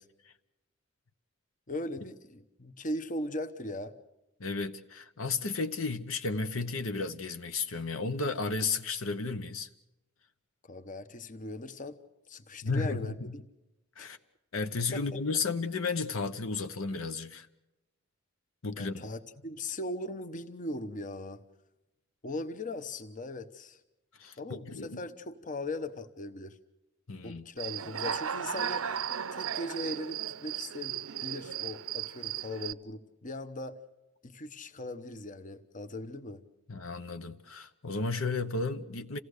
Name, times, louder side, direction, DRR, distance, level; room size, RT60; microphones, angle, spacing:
voice 1, 1.7-3.9 10.7-12.0 12.3-13.4 14.0-14.1 14.9-15.2 18.8-21.4 22.2-23.8 24.4-26.6 27.2-29.0 29.3-33.8 34.2-36.4, left 1 dB, 40° left, 1.0 m, -39 dB
voice 2, 4.4-9.7 12.6-13.3 14.0-14.2 14.5-17.5 18.6-19.0 24.2-25.0 27.1-27.5 36.7-39.2, left 4 dB, 75° left, 1.0 m, -33 dB
Human voice / Cricket, 27.6-32.7, right 8 dB, 85° right, 0.7 m, -35 dB
27.5 x 17.0 x 6.6 m
head